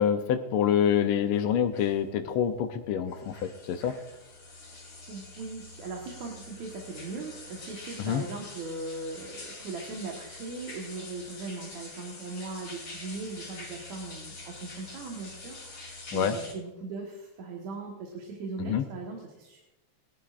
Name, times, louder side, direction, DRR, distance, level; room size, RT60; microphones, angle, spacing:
voice 1, 0.0-3.9 8.0-8.2 16.1-16.4 18.6-18.8, left 9 dB, 90° left, 7 dB, 1.2 m, -26 dB
sound 1, 0.9-16.5, left 2 dB, 45° left, 4.2 m, -46 dB
voice 2, 5.1-19.6, right 3 dB, 70° right, 0 dB, 2.7 m, -39 dB
22.0 x 11.5 x 2.5 m, 1.0 s
omnidirectional pair, 3.4 m